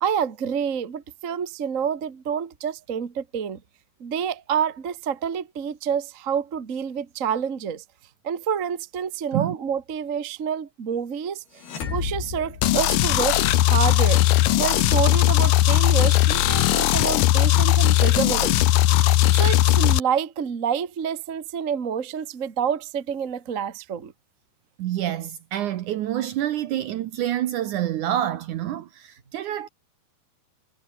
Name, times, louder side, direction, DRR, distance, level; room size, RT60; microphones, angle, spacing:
voice 1, 0.0-3.6 4.0-7.8 8.2-11.4 11.9-14.2 14.6-18.6 19.4-24.1, right 7 dB, 40° right, 1.1 m, -28 dB
sound 1, 11.6-13.6, left 6 dB, 85° left, 6.7 m, -33 dB
sound 2, 12.6-20.0, left 15 dB, 70° left, 2.3 m, -18 dB
voice 2, 24.8-29.7, right 12 dB, 70° right, 2.1 m, -27 dB
omnidirectional pair, 4.4 m